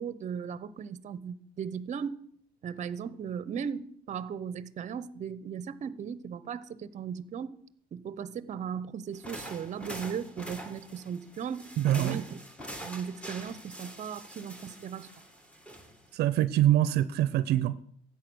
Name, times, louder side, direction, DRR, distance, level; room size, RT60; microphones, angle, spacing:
voice 1, 0.0-2.2 2.6-7.6 7.9-11.7 12.0-12.4 12.8-15.1, right 7 dB, 45° right, 0.8 m, -37 dB
sound 1, 9.1-16.2, right 1 dB, 5° left, 2.0 m, -44 dB
voice 2, 11.8-12.2 16.1-18.0, right 13 dB, 75° right, 0.6 m, -25 dB
13.5 x 8.7 x 6.3 m
cardioid pair, 110°, 17 cm